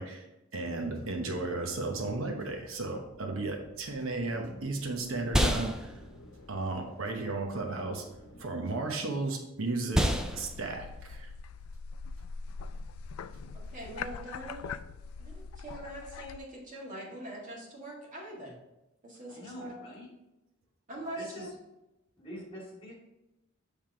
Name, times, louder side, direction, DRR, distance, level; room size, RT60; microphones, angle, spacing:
voice 1, 0.0-5.9 6.5-8.0 8.4-11.3, right 3 dB, 70° right, 2 dB, 0.9 m, -34 dB
sound 1, 0.6-8.4, left 1 dB, 65° left, 1.0 m, -51 dB
sound 2, 4.0-13.6, equal, 5° right, 0.4 m, -34 dB
sound 3, 10.2-16.4, left 5 dB, 90° left, 0.3 m, -42 dB
voice 2, 13.7-14.7 15.2-18.5 19.0-19.7 20.9-21.5, right 1 dB, 40° right, -3 dB, 1.9 m, -42 dB
voice 3, 19.3-20.1 21.0-21.6 22.2-22.9, left 1 dB, 25° left, -4 dB, 2.2 m, -46 dB
7.5 x 3.5 x 4.6 m, 0.95 s
head